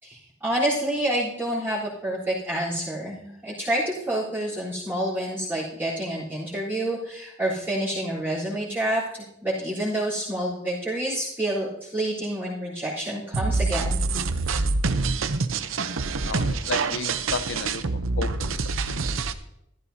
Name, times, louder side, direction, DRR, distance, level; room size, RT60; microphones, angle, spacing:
voice 1, 0.0-14.0, right 1 dB, 10° right, -11 dB, 3.6 m, -28 dB
sound 1, 13.3-19.3, right 3 dB, 80° right, 0.7 m, -26 dB
voice 2, 16.2-17.8 18.2-18.6 18.8-19.2, left 4 dB, 60° left, 12 dB, 0.6 m, -33 dB
14.5 x 14.0 x 2.8 m, 0.81 s
head